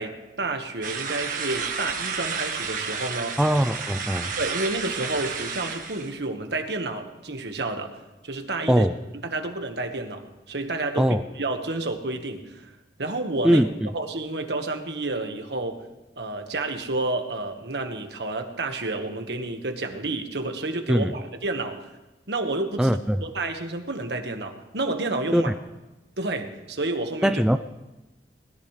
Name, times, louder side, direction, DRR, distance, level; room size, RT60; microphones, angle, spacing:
voice 1, 0.0-3.4 4.4-8.0 8.2-8.9 9.2-12.7 13.0-13.6 13.9-15.8 16.2-21.9 22.3-25.5 26.2-27.4, right 2 dB, 75° right, 5 dB, 1.5 m, -30 dB
sound 1, 0.8-6.1, right 5 dB, 50° right, 1.6 m, -31 dB
voice 2, 3.4-4.3 8.7-8.9 11.0-11.2 13.4-13.7 20.9-21.1 22.8-23.2 25.3-25.5 27.2-27.6, equal, 5° right, 10 dB, 0.3 m, -21 dB
20.5 x 14.0 x 3.3 m, 1.1 s
head